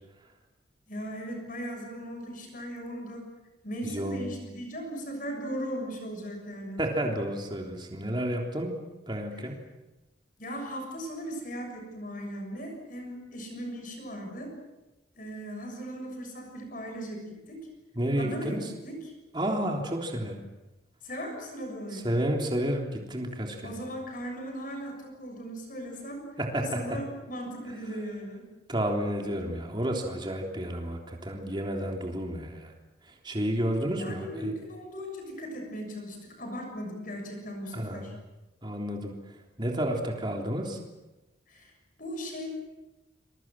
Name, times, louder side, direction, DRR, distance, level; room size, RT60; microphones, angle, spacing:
voice 1, 0.9-3.3 3.6-6.8 10.4-14.5 15.2-17.6 18.2-18.6 18.8-19.0 21.0-22.1 23.6-26.2 26.6-28.5 34.0-38.1 41.5-41.7 42.0-42.5, equal, 45° left, 3 dB, 6.8 m, -38 dB
voice 2, 3.8-4.2 6.8-8.8 9.1-9.6 17.9-18.7 19.3-20.5 21.9-23.7 26.4-27.0 28.7-32.7 33.0-34.5 37.7-38.2 38.6-40.8, right 1 dB, 25° right, 1 dB, 3.5 m, -31 dB
27.5 x 22.5 x 7.6 m, 1.0 s
head